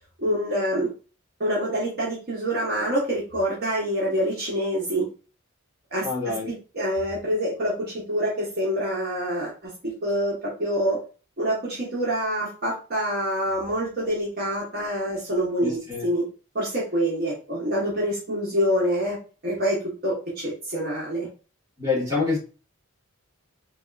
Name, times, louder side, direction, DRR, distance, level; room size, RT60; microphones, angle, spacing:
voice 1, 0.2-0.9 1.4-5.1 5.9-6.1 6.5-11.0 11.4-16.2 16.5-19.2 19.4-21.3, equal, 45° right, 0.9 m, -26 dB
voice 2, 6.0-6.5 15.6-16.0 21.8-22.4, left 4 dB, 15° right, 1.3 m, -26 dB
3.3 x 2.3 x 2.3 m
head